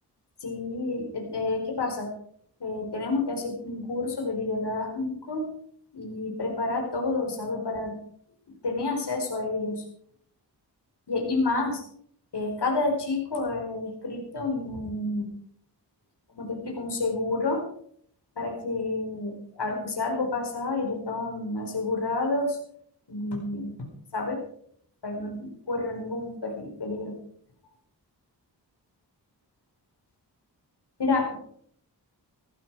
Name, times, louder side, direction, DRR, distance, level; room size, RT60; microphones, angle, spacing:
voice 1, 0.4-2.1 2.6-5.5 5.9-8.0 8.6-9.8 11.1-11.8 12.3-15.3 16.3-17.6 18.4-22.6 23.1-23.7 24.1-24.4 25.0-27.1 31.0-31.3, left 3 dB, 65° left, 1 dB, 4.7 m, -29 dB
15.5 x 15.0 x 4.8 m, 0.64 s
cardioid pair, 50°, 43 cm